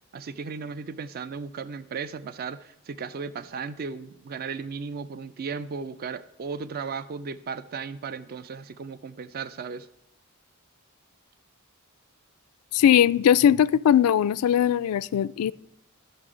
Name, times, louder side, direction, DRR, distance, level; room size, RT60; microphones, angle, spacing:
voice 1, 0.1-9.9, right 5 dB, 45° right, 14 dB, 0.4 m, -35 dB
voice 2, 12.7-15.5, left 9 dB, 75° left, 18 dB, 0.3 m, -20 dB
12.0 x 6.6 x 4.9 m, 0.76 s
head